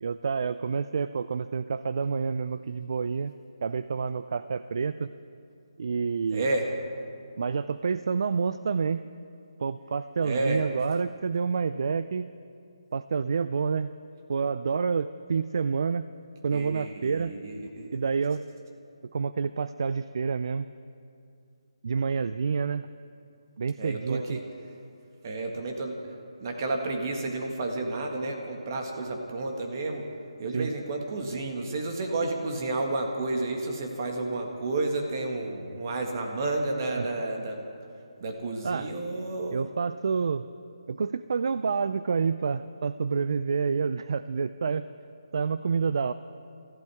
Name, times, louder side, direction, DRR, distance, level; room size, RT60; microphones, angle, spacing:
voice 1, 0.0-3.3 3.6-5.1 5.8-6.5 7.4-9.0 9.6-12.3 12.9-13.9 14.3-16.1 16.4-17.3 17.9-18.4 19.1-20.7 21.8-22.9 23.6-24.4 30.5-30.7 37.0-37.1 38.6-38.9 39.5-40.5 40.9-44.9 45.3-46.1, right 5 dB, 55° right, 13 dB, 0.4 m, -28 dB
voice 2, 6.3-6.7 10.2-10.6 16.5-18.0 23.8-24.4 25.2-26.0 26.4-30.1 30.4-37.6 38.2-39.6, right 2 dB, 35° right, 3 dB, 1.8 m, -31 dB
26.5 x 15.0 x 3.5 m, 2.5 s
hypercardioid pair, 165°, 3 cm